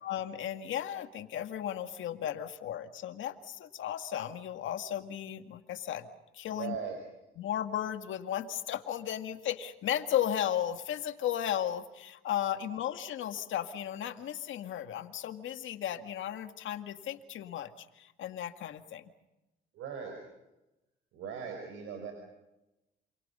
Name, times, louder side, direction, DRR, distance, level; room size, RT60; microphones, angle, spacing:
voice 1, 0.0-6.1 6.3-6.8 7.4-19.0, left 10 dB, 75° left, 8 dB, 2.0 m, -35 dB
voice 2, 6.5-7.0 19.7-20.2 21.1-22.1, right 7 dB, 90° right, 3 dB, 5.2 m, -39 dB
28.0 x 28.0 x 5.6 m, 0.97 s
cardioid pair, 90°, 20 cm